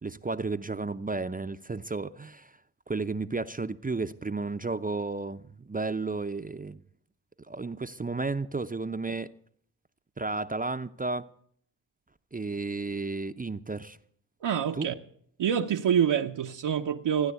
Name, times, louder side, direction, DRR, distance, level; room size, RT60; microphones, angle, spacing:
voice 1, 0.0-2.6 2.9-6.8 7.5-9.3 10.2-11.3 12.3-14.0 14.8-14.9, right 3 dB, 20° right, 0.6 m, -33 dB
voice 2, 14.4-15.0 15.4-17.3, right 8 dB, 80° right, 0.9 m, -26 dB
15.0 x 9.7 x 8.1 m
cardioid pair, 60°, 43 cm